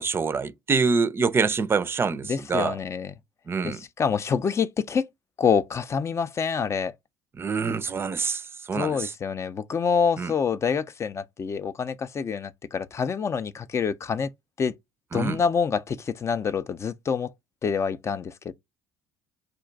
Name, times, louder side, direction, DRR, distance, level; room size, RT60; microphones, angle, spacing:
voice 1, 0.0-2.8 3.5-3.8 7.4-9.1 10.2-10.3 15.1-15.4, right 5 dB, 30° right, 0.4 m, -26 dB
voice 2, 2.3-3.1 3.6-5.1 5.4-6.9 8.8-14.3 14.6-14.7 15.1-17.3 17.6-18.5, left 6 dB, 35° left, 0.4 m, -26 dB
2.5 x 2.2 x 3.8 m
hypercardioid pair, 65°, 8 cm